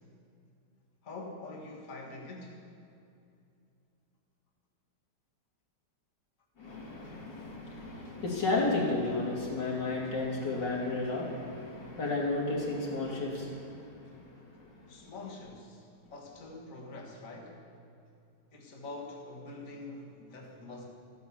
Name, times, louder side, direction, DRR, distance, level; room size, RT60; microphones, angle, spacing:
voice 1, 1.0-2.7 14.9-17.6 18.5-20.9, left 2 dB, 50° left, -1 dB, 2.1 m, -45 dB
voice 2, 6.6-15.1, left 2 dB, 85° left, -3 dB, 3.4 m, -33 dB
14.5 x 10.5 x 7.2 m, 2.6 s
omnidirectional pair, 1.9 m